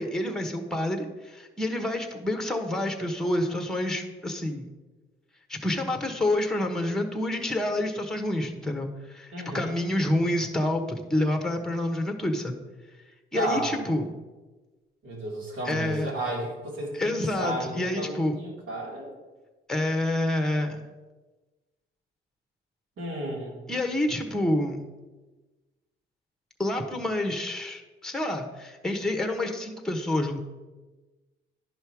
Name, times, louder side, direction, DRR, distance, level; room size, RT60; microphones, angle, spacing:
voice 1, 0.0-4.7 5.5-12.6 13.3-14.0 15.6-16.1 16.9-18.3 19.7-20.8 23.7-24.9 26.6-30.4, left 1 dB, ahead, 4 dB, 1.2 m, -28 dB
voice 2, 9.3-9.7 13.4-13.7 15.0-19.1 23.0-23.6, right 1 dB, 80° right, -4 dB, 3.4 m, -33 dB
11.0 x 5.4 x 4.7 m, 1.2 s
cardioid pair, 90°, 20 cm